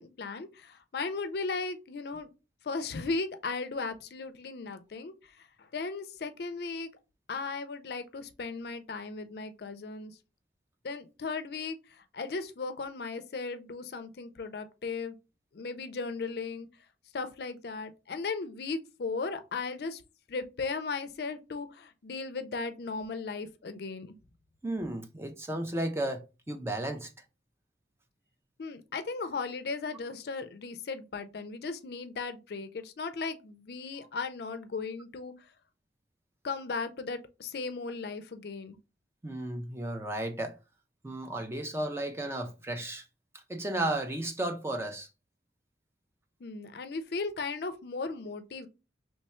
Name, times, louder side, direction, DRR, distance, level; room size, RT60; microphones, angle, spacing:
voice 1, 0.0-2.3 2.6-6.9 7.3-10.1 10.8-15.2 15.5-16.7 17.1-20.0 20.3-24.2 28.6-35.3 36.4-38.8 46.4-48.7, left 4 dB, 55° left, 0.4 m, -36 dB
voice 2, 24.6-27.1 39.2-40.6 41.0-43.1 43.5-45.1, right 1 dB, 15° right, 0.4 m, -34 dB
3.1 x 2.2 x 4.2 m
head